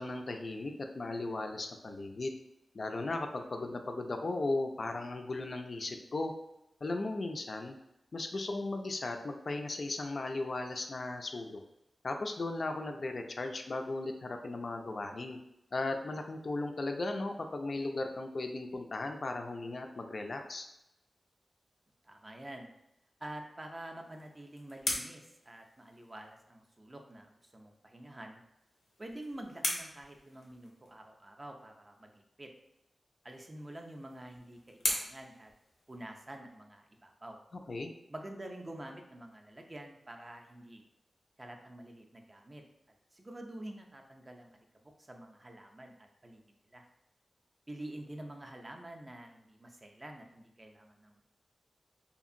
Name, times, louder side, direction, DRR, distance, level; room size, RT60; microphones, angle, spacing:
voice 1, 0.0-2.4 2.7-6.3 6.8-7.8 8.1-11.6 12.0-15.4 15.7-20.7 37.7-37.9, left 2 dB, 55° left, 5 dB, 0.3 m, -36 dB
voice 2, 22.0-22.7 23.2-28.4 29.0-32.5 33.2-35.5 35.9-37.4 38.1-40.8 41.4-42.6 43.1-46.4 46.7-46.9 47.7-51.2, right 1 dB, 25° right, 3 dB, 0.4 m, -48 dB
sound 1, 23.9-26.4 28.5-31.0 33.2-36.3, left 1 dB, 85° left, 0.7 m, -40 dB
2.8 x 2.5 x 2.5 m, 0.85 s
wide cardioid pair, 95°, 0 cm